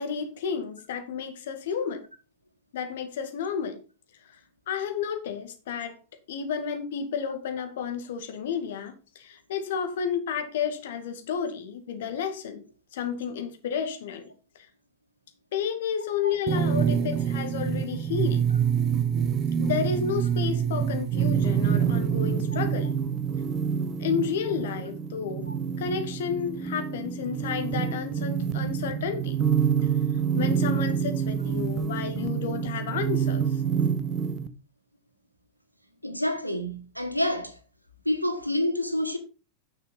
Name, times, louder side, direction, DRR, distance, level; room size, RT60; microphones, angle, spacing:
voice 1, 0.0-2.0 2.7-3.8 4.7-6.0 6.3-12.6 12.9-14.3 15.5-18.5 19.6-23.0 24.0-25.5 25.8-29.4 30.3-33.6, left 7 dB, 55° left, 2.1 m, -31 dB
sound 1, 16.5-34.5, right 8 dB, 30° right, 1.1 m, -27 dB
voice 2, 36.0-37.6 38.0-39.2, left 1 dB, 90° right, 1.6 m, -28 dB
9.9 x 6.6 x 5.6 m
figure-of-eight pair, 90°, 0 cm